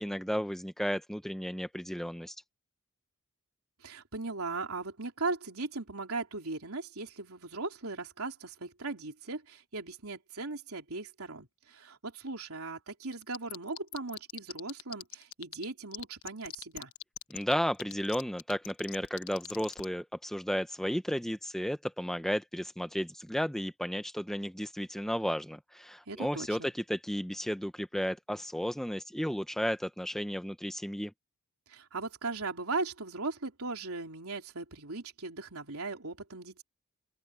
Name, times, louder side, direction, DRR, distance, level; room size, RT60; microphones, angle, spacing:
voice 1, 0.0-2.3 17.3-31.1, equal, ahead, 0.7 m, -33 dB
voice 2, 3.8-16.9 26.1-26.7 31.7-36.6, right 3 dB, 75° right, 3.5 m, -38 dB
sound 1, 13.1-15.6 15.9-19.8, left 12 dB, 65° left, 1.2 m, -41 dB
open air
head